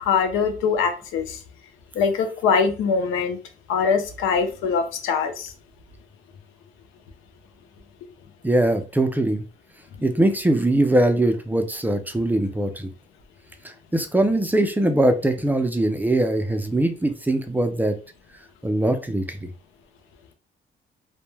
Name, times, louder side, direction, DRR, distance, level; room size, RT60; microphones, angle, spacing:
voice 1, 0.0-1.4 1.9-3.4 3.7-5.5, left 5 dB, 85° left, 7 dB, 0.5 m, -22 dB
voice 2, 8.4-9.4 10.0-12.9 13.6-18.0 18.6-19.5, right 1 dB, 10° right, 6 dB, 0.3 m, -21 dB
2.1 x 2.1 x 3.1 m, 0.34 s
cardioid pair, 90°, 20 cm